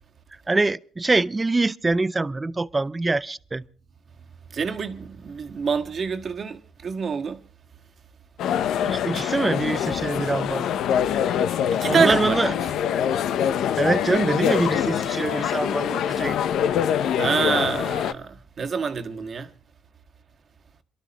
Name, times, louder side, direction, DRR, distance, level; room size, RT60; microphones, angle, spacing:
voice 1, 0.5-3.6 8.8-10.7 11.9-12.5 13.7-16.4 16.7-16.8, right 3 dB, 20° right, 0.6 m, -24 dB
voice 2, 4.5-7.4 11.7-12.5 17.2-19.5, right 6 dB, 50° right, 1.6 m, -26 dB
sound 1, 8.4-18.1, left 9 dB, 80° left, 0.8 m, -24 dB
27.5 x 12.5 x 3.0 m
cardioid pair, 90°, 0 cm